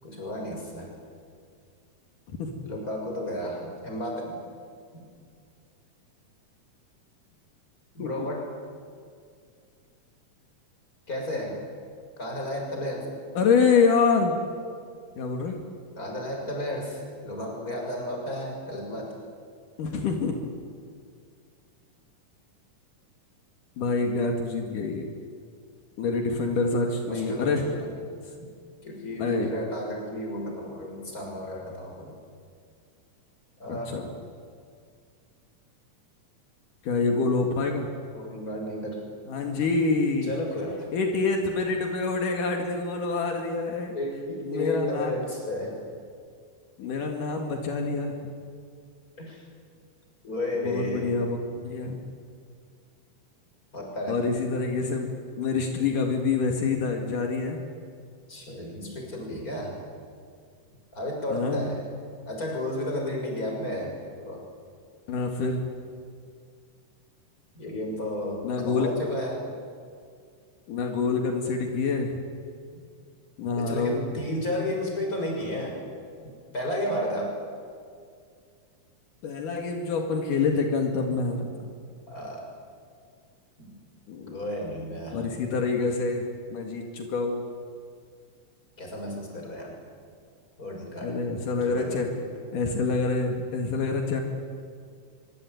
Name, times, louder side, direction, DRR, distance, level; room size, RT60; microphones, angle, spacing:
voice 1, 0.0-0.9 2.6-4.4 7.9-8.5 11.1-11.6 12.2-13.1 15.9-19.2 27.1-27.9 28.4-28.5 28.8-32.1 33.6-34.1 38.1-39.0 40.2-40.9 43.9-45.8 49.2-49.4 50.2-51.1 53.7-54.2 58.3-59.8 60.9-61.8 62.2-64.4 67.5-69.5 73.6-75.8 76.5-77.3 81.5-81.6 82.1-82.5 83.6-83.7 84.3-85.2 88.8-89.7 90.6-91.2 91.6-92.3, left 1 dB, 25° left, 0 dB, 6.8 m, -33 dB
voice 2, 13.4-14.3 15.2-15.6 19.8-20.4 23.8-25.1 26.0-27.6 29.2-29.5 33.7-34.1 36.8-37.9 39.3-40.3 40.9-44.0 44.5-45.1 46.8-48.1 50.6-52.0 54.1-57.6 61.3-61.9 65.1-65.7 68.4-68.9 70.7-72.2 73.4-74.0 79.2-81.5 84.1-84.4 85.1-87.4 91.0-92.1 92.5-94.2, left 4 dB, 80° left, 3 dB, 3.7 m, -26 dB
24.5 x 24.5 x 9.5 m, 2.2 s
omnidirectional pair, 3.7 m